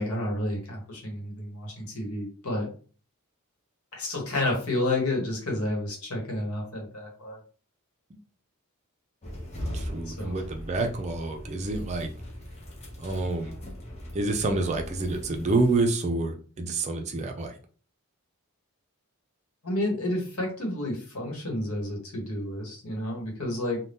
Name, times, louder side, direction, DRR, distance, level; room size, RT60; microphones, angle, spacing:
voice 1, 0.0-2.7 3.9-7.4 10.0-10.4 19.6-23.8, left 1 dB, 75° left, 0 dB, 1.2 m, -30 dB
sound 1, 9.2-15.8, equal, 30° left, 0.7 m, -39 dB
voice 2, 9.7-12.1 13.0-13.5 14.1-17.5, right 2 dB, 30° right, 4 dB, 0.4 m, -28 dB
2.6 x 2.2 x 3.4 m, 0.40 s
head